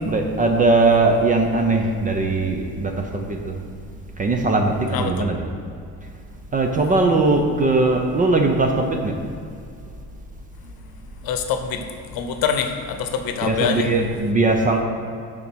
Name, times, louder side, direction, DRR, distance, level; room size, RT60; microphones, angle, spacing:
voice 1, 0.0-3.6 4.2-5.4 6.5-9.1 13.4-14.8, right 3 dB, 20° right, 3 dB, 0.4 m, -20 dB
voice 2, 4.9-5.3 11.2-11.8 12.1-13.9, left 7 dB, 65° left, 7 dB, 0.8 m, -25 dB
7.0 x 5.1 x 6.1 m, 2.4 s
cardioid pair, 175°, 38 cm